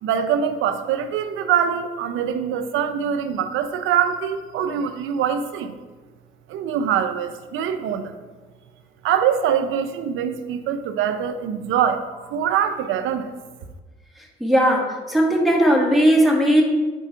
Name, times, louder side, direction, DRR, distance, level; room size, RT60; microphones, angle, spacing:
voice 1, 0.0-5.7 6.5-8.1 9.0-12.0 12.3-13.3, right 8 dB, 85° right, 8 dB, 0.5 m, -23 dB
voice 2, 14.4-16.6, equal, ahead, -1 dB, 1.6 m, -17 dB
7.1 x 4.4 x 4.5 m, 1.3 s
cardioid pair, 90°, 20 cm